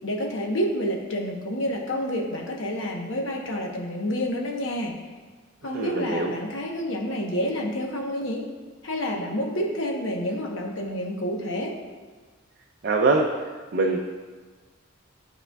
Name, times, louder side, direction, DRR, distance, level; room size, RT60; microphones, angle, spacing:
voice 1, 0.0-4.9 5.6-8.4 8.8-11.8, equal, 65° left, 0 dB, 1.0 m, -28 dB
voice 2, 5.7-6.3 12.8-13.3 13.7-14.0, right 3 dB, 50° right, 0 dB, 0.5 m, -22 dB
11.5 x 4.3 x 2.3 m, 1.4 s
head